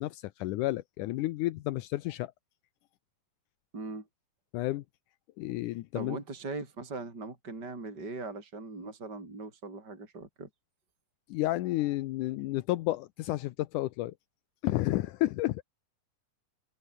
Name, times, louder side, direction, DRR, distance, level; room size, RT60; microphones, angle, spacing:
voice 1, 0.0-2.3 4.5-4.8 5.4-6.2 11.3-14.1 14.6-15.6, left 17 dB, 80° left, 1.8 m, -31 dB
voice 2, 3.7-4.1 5.9-10.5, right 3 dB, 25° right, 6.1 m, -40 dB
open air
omnidirectional pair, 4.4 m